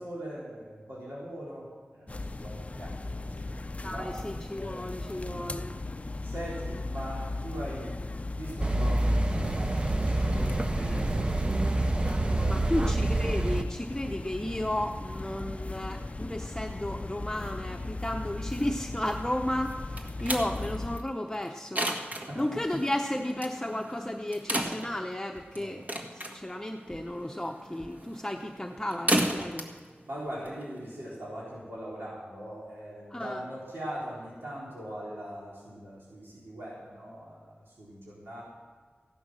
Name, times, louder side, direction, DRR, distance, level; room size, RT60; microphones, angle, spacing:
voice 1, 0.0-4.1 5.2-5.5 6.2-8.0 8.4-11.5 12.2-12.7 22.1-22.5 25.5-25.8 30.1-38.4, equal, 90° right, -7 dB, 4.0 m, -41 dB
sound 1, 2.1-21.0, left 2 dB, 35° left, 0.4 m, -37 dB
voice 2, 3.8-5.7 12.5-22.0 22.4-25.8 26.1-29.7 33.1-33.4, left 1 dB, 10° left, 2 dB, 0.8 m, -33 dB
sound 2, 8.6-13.6, right 2 dB, 25° right, 0.5 m, -27 dB
sound 3, 19.7-31.1, right 1 dB, 45° right, 1.7 m, -35 dB
15.5 x 11.5 x 6.4 m, 1.5 s
wide cardioid pair, 70°, 4 cm